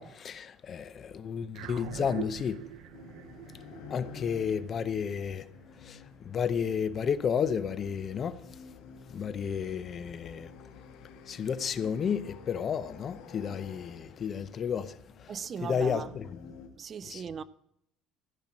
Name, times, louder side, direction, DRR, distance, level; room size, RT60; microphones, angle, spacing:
voice 1, 0.0-2.6 3.9-5.5 5.8-8.4 9.1-10.5 11.3-15.3 15.6-16.4 17.0-17.4, left 7 dB, 35° left, 0.7 m, -32 dB
sound 1, 1.5-6.2, right 12 dB, 80° right, 0.7 m, -44 dB
sound 2, 2.9-16.7, left 6 dB, 85° left, 1.9 m, -51 dB
voice 2, 15.3-16.1 16.8-17.4, right 7 dB, 35° right, 0.4 m, -38 dB
14.5 x 5.9 x 7.4 m
cardioid pair, 130°, 0 cm